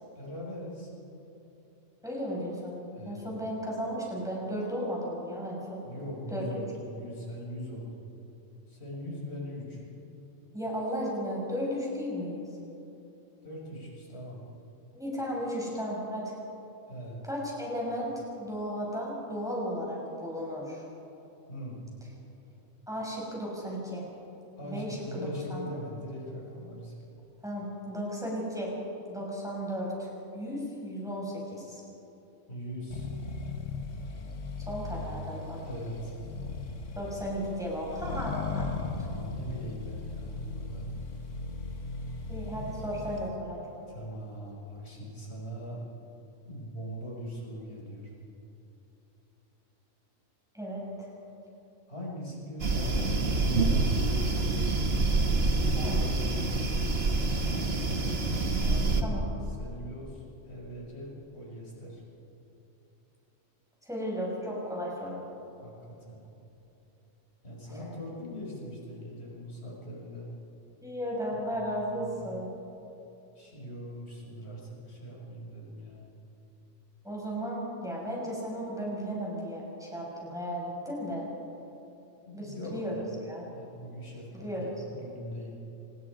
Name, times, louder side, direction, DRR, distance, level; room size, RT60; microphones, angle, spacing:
voice 1, 0.1-0.9 2.9-3.3 5.8-8.0 8.7-9.8 13.4-14.4 16.9-17.2 21.5-21.9 24.6-26.9 32.5-33.1 35.6-36.2 38.9-41.0 43.9-45.8 46.5-48.1 51.9-53.0 53.3-54.1 55.6-56.7 58.6-62.0 65.6-66.3 67.4-70.3 71.3-71.4 72.0-72.3 73.4-76.1 82.2-83.1 83.5-85.6, equal, 50° left, -4 dB, 5.8 m, -41 dB
voice 2, 2.0-2.8 3.0-5.8 6.3-6.4 10.5-12.5 14.9-16.3 17.2-20.9 22.9-24.0 24.6-25.7 27.4-28.7 29.1-31.8 34.6-35.6 36.9-38.7 42.3-43.6 50.5-51.1 55.8-56.0 59.0-59.3 63.8-65.2 67.9-68.0 70.8-72.5 77.0-81.3 82.3-83.5 84.3-84.7, equal, ahead, -4 dB, 6.4 m, -35 dB
Accelerating revving vroom, 32.9-43.3, left 3 dB, 65° left, 1.6 m, -37 dB
sound 1, 52.6-59.0, right 3 dB, 50° right, 1.7 m, -26 dB
25.5 x 20.5 x 5.0 m, 3.0 s
omnidirectional pair, 1.4 m